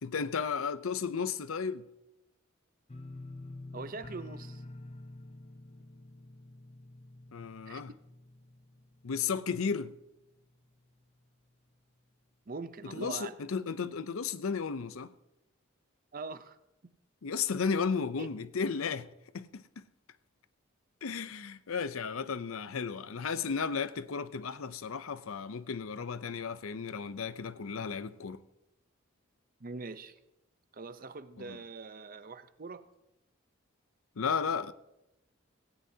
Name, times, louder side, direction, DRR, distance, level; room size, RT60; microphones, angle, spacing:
voice 1, 0.0-1.8 7.3-7.9 9.0-9.9 12.9-15.1 17.2-19.1 19.3-19.8 21.0-28.4 31.4-31.6 34.2-34.7, left 5 dB, 80° left, 0.6 m, -34 dB
sound 1, 2.9-9.8 10.1-10.6 11.0-11.1, left 2 dB, 30° left, 0.6 m, -48 dB
voice 2, 3.7-4.6 7.7-7.8 12.5-13.3 16.1-16.6 18.2-18.3 29.6-30.2 30.7-32.9, right 4 dB, 45° right, 0.6 m, -42 dB
17.0 x 17.0 x 2.8 m
head